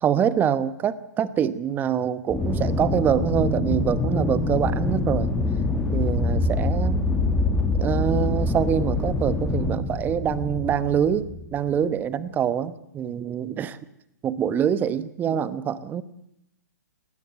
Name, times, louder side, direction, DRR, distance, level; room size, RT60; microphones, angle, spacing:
voice 1, 0.0-5.3 5.9-7.0 7.7-13.8 14.2-16.0, right 9 dB, 20° right, 15 dB, 1.0 m, -25 dB
Aircraft, 2.3-11.8, left 2 dB, 10° left, 1.8 m, -25 dB
20.0 x 18.5 x 8.0 m, 0.78 s
hypercardioid pair, 130°, 10 cm